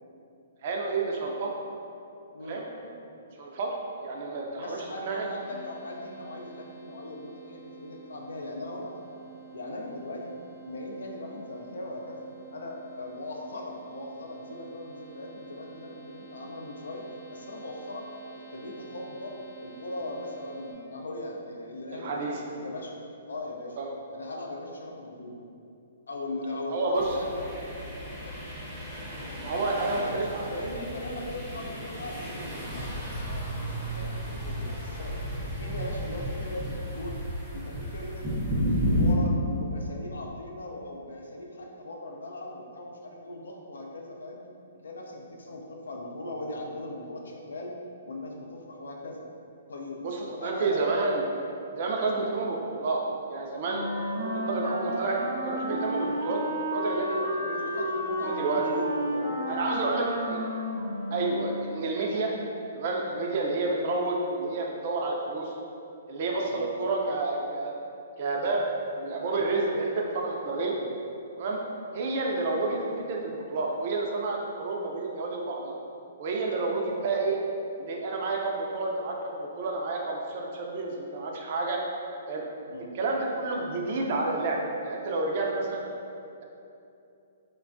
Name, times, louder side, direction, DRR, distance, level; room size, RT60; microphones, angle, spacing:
voice 1, 0.6-1.5 2.4-2.6 3.4-3.7 4.0-5.3 21.9-22.4 23.8-23.9 26.7-27.1 29.4-30.6 50.0-51.2 51.7-53.0 53.3-53.9 54.2-56.4 56.7-57.7 58.2-58.6 59.5-60.5 61.1-62.3 62.7-65.6 66.1-67.7 68.2-68.7 69.0-70.8 71.4-71.6 71.9-75.7 76.2-77.4 77.8-81.8 82.3-82.4 82.9-85.8, right 3 dB, 50° right, -1 dB, 0.3 m, -30 dB
voice 2, 2.3-2.9 4.6-9.2 9.5-10.3 10.6-18.1 18.3-22.9 23.3-23.8 24.1-25.4 26.1-27.5 30.0-35.1 35.5-37.2 37.5-44.4 44.8-47.7 48.1-49.2 49.7-50.0 50.4-50.8 52.0-52.2 57.6-60.4 61.1-61.2 66.5-66.6 70.7-70.9 82.7-82.9, left 1 dB, 85° left, 0 dB, 0.4 m, -39 dB
sound 1, 5.4-20.7, right 6 dB, 30° left, 0.8 m, -50 dB
sound 2, 26.9-39.1, equal, ahead, 0.6 m, -33 dB
Wind instrument woodwind instrument, 53.6-61.9, equal, 90° right, 0.8 m, -32 dB
3.2 x 2.2 x 2.5 m, 2.6 s
hypercardioid pair, 135°, 0 cm